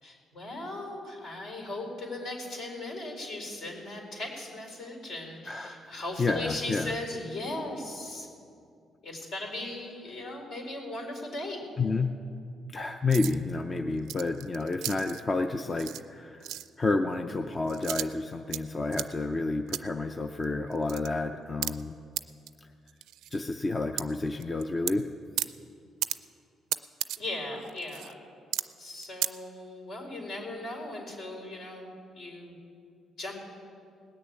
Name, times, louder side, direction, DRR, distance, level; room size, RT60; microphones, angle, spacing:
voice 1, 0.0-8.3 9.0-11.6 27.2-28.2 28.8-32.6 33.2-33.3, left 2 dB, 65° left, 1 dB, 4.4 m, -38 dB
voice 2, 5.5-5.9 6.2-6.9 11.8-12.1 12.7-21.9 23.3-25.1, left 3 dB, 30° left, 6 dB, 0.5 m, -30 dB
sound 1, 13.1-13.3 14.0-15.2 15.8-16.1 16.4-16.7 17.7-18.6 18.9-19.1 19.7-19.8 20.4-20.5 20.7-21.1 21.6-21.7 22.2-22.3 22.5-22.6 22.9-23.4 24.0-24.1 24.4-24.9 25.4-25.5 26.0-26.1 26.7-27.2 27.6-28.1 28.5-28.6 28.9-29.3, right 13 dB, 90° right, 0.4 m, -33 dB
19.0 x 6.8 x 8.9 m, 2.4 s
cardioid pair, 105°, 0 cm